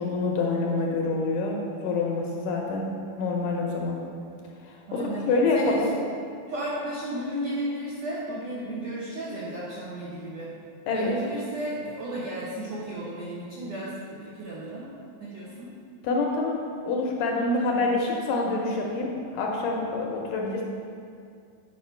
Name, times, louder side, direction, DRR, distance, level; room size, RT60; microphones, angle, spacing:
voice 1, 0.0-2.9 3.2-4.0 4.6-5.9 10.9-11.1 16.0-20.6, left 3 dB, 75° left, -1 dB, 2.1 m, -26 dB
voice 2, 4.9-5.8 6.5-10.5 10.9-14.9 15.2-15.7, right 1 dB, 75° right, -7 dB, 1.5 m, -34 dB
8.6 x 5.5 x 4.4 m, 2.4 s
omnidirectional pair, 4.2 m